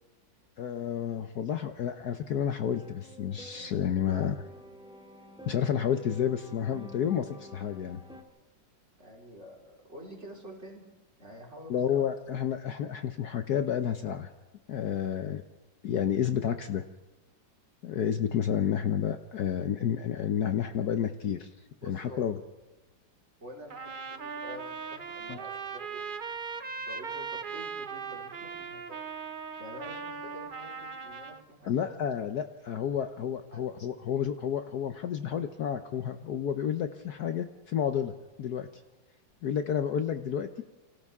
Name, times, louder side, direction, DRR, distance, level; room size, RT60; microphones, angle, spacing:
voice 1, 0.6-4.4 5.5-8.0 11.7-14.3 14.7-15.4 15.8-16.8 17.8-21.5 21.8-22.4 25.3-25.4 31.6-38.1 38.4-38.7 39.4-40.6, left 9 dB, 60° left, 8 dB, 1.2 m, -30 dB
sound 1, 2.7-8.2, equal, 5° right, 2.3 m, -49 dB
voice 2, 9.0-10.8 11.2-12.0 21.8-22.2 23.4-26.0 26.8-29.0 29.6-31.9 33.5-33.6, equal, 35° right, -3 dB, 4.7 m, -48 dB
Trumpet, 23.7-31.4, right 5 dB, 85° right, 0.4 m, -39 dB
29.0 x 25.0 x 3.6 m, 1.1 s
omnidirectional pair, 2.1 m